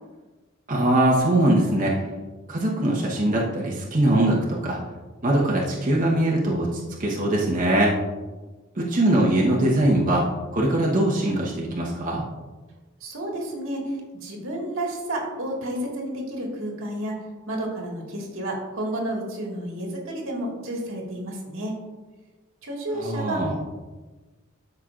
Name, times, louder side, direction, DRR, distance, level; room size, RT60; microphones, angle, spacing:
voice 1, 0.7-2.1 2.5-4.8 5.2-7.9 8.8-10.2 10.5-12.2 22.9-23.5, right 1 dB, 40° right, -4 dB, 1.2 m, -22 dB
voice 2, 13.0-17.1 17.5-21.7 22.6-23.4, right 1 dB, 85° right, -1 dB, 2.0 m, -31 dB
12.5 x 5.6 x 2.5 m, 1.2 s
head